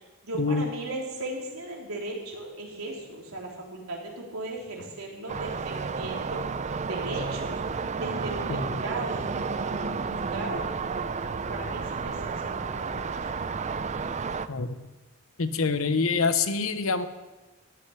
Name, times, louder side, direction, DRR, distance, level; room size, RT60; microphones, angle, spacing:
voice 1, 0.2-6.4 6.9-7.6 8.0-10.7 11.5-13.3, right 2 dB, 85° right, -1 dB, 3.4 m, -37 dB
sound 1, 5.3-14.5, right 5 dB, 35° right, 0.5 m, -31 dB
voice 2, 15.4-17.1, left 4 dB, 70° left, 11 dB, 0.9 m, -26 dB
13.5 x 6.7 x 9.9 m, 1.2 s
head